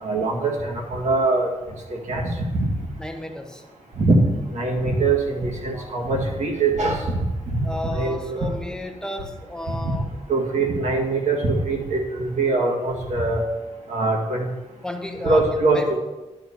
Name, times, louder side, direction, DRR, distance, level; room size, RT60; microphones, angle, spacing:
voice 1, 0.0-1.5 1.9-2.7 4.0-4.1 4.5-7.0 7.5-7.6 7.9-8.4 9.7-9.9 10.3-13.4 13.9-14.5 15.2-16.0, right 3 dB, 85° right, 0 dB, 1.9 m, -23 dB
voice 2, 3.0-3.6 5.7-5.9 7.6-10.1 14.8-15.9, left 1 dB, 5° left, 3 dB, 0.9 m, -33 dB
11.0 x 4.3 x 6.8 m, 1.1 s
wide cardioid pair, 135°, 12 cm